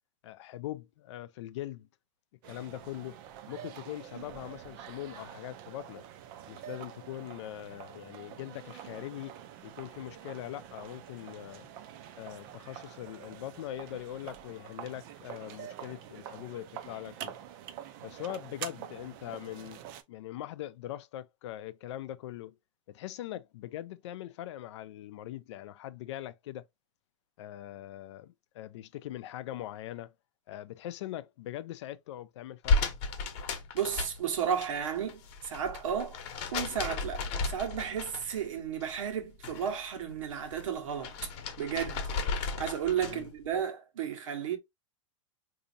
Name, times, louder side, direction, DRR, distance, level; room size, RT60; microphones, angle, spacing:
voice 1, 0.2-1.9 2.5-3.2 3.5-6.0 6.5-9.4 9.6-11.7 12.1-17.4 18.0-19.8 20.1-22.6 22.9-26.6 27.4-30.1 30.5-32.8 43.0-43.3, left 13 dB, 60° left, 0.4 m, -41 dB
sound 1, 2.4-20.0, right 10 dB, 45° right, 0.5 m, -46 dB
sound 2, 32.6-34.7 35.0-38.5 38.8-39.8 40.1-43.3, left 3 dB, 35° left, 0.9 m, -34 dB
voice 2, 33.7-36.2 36.5-41.3 41.6-44.6, right 8 dB, 85° right, 1.2 m, -33 dB
4.0 x 2.7 x 2.6 m
supercardioid pair, 155°, 16 cm